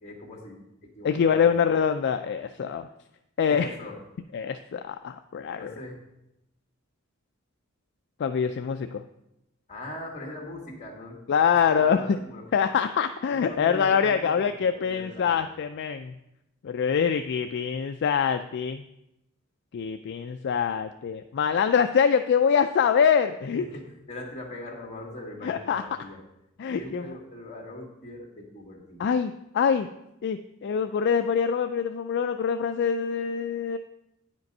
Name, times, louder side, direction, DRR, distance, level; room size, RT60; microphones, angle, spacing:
voice 1, 0.0-1.8 3.5-4.0 5.6-6.0 9.7-11.2 11.8-12.4 13.3-15.5 23.6-26.2 26.8-29.1, left 1 dB, 35° left, 0 dB, 2.0 m, -41 dB
voice 2, 1.0-2.9 3.4-3.7 4.3-5.7 8.2-9.0 11.3-12.2 12.5-16.1 16.6-18.8 19.7-23.6 25.4-25.8 26.6-27.0 29.0-29.9 30.2-33.8, left 7 dB, 55° left, 8 dB, 0.3 m, -24 dB
9.4 x 5.2 x 5.4 m, 0.87 s
head